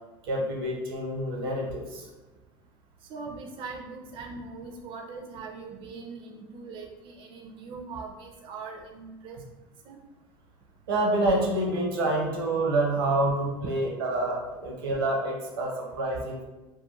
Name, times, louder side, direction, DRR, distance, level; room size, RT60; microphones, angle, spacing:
voice 1, 0.2-2.1 10.9-16.4, right 1 dB, 85° right, 0 dB, 0.7 m, -27 dB
voice 2, 3.1-9.4 9.9-10.0, right 4 dB, 45° right, 0 dB, 0.4 m, -41 dB
2.3 x 2.2 x 2.9 m, 1.1 s
hypercardioid pair, 85°, 12 cm